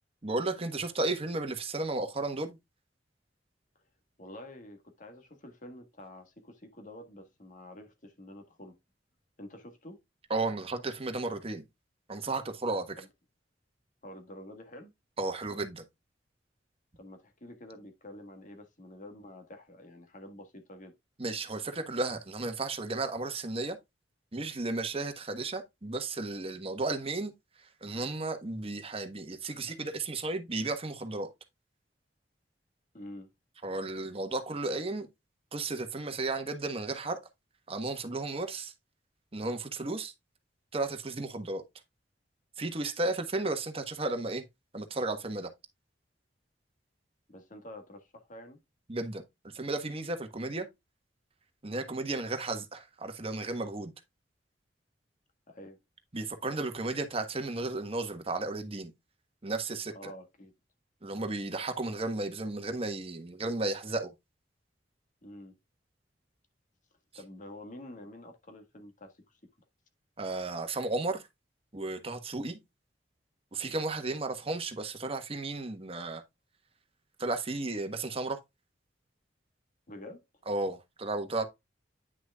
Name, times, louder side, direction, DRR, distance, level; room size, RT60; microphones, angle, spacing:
voice 1, 0.2-2.6 10.3-11.6 12.1-13.0 15.2-15.8 21.2-23.8 24.3-27.3 27.6-31.3 33.6-35.1 35.5-37.2 37.7-38.7 39.3-40.1 40.7-41.6 42.6-44.4 44.7-45.5 48.9-49.2 49.5-50.7 51.6-53.9 56.1-58.9 59.4-60.1 61.0-64.1 70.2-71.3 71.7-72.6 73.5-76.2 77.2-78.4 80.5-81.4, right 2 dB, 30° right, 1.3 m, -34 dB
voice 2, 4.2-8.8 9.4-10.0 13.0-13.1 14.0-14.9 17.0-20.9 32.9-33.3 47.3-48.6 55.5-55.8 59.9-60.5 65.2-65.5 67.1-69.4 79.9-80.2, left 1 dB, 45° left, 1.6 m, -48 dB
9.9 x 6.1 x 2.3 m
head